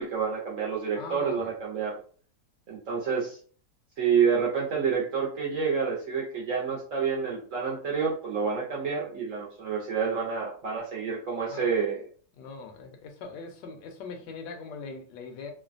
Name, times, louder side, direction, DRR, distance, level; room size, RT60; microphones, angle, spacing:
voice 1, 0.0-2.0 2.7-3.4 4.0-12.1, right 6 dB, 65° right, -3 dB, 0.8 m, -28 dB
voice 2, 1.0-1.5 11.5-11.7 12.4-15.5, left 4 dB, 85° left, 5 dB, 1.3 m, -41 dB
3.1 x 2.1 x 2.4 m, 0.43 s
omnidirectional pair, 1.9 m